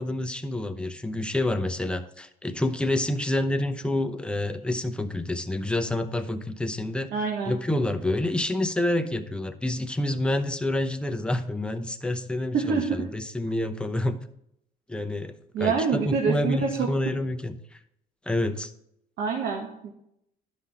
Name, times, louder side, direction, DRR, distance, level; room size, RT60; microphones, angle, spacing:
voice 1, 0.0-7.1 7.4-14.2 14.9-17.8 18.3-18.7, left 1 dB, 5° left, 7 dB, 0.8 m, -28 dB
voice 2, 7.1-7.5 12.5-13.0 15.5-16.9 19.2-19.9, right 5 dB, 70° right, 0 dB, 1.6 m, -26 dB
11.0 x 5.7 x 4.2 m, 0.75 s
cardioid pair, 110°, 17 cm